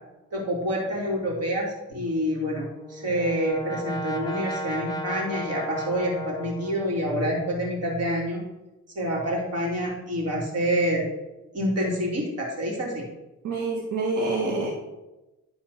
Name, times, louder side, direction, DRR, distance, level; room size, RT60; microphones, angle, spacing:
voice 1, 0.3-8.4 8.9-11.0 11.5-13.0, equal, 55° right, -2 dB, 3.3 m, -27 dB
Brass instrument, 2.5-7.3, left 1 dB, 15° left, 1.1 m, -35 dB
voice 2, 13.4-14.7, right 2 dB, 75° right, -2 dB, 1.6 m, -26 dB
11.0 x 4.3 x 5.7 m, 1.0 s
cardioid pair, 90°, 30 cm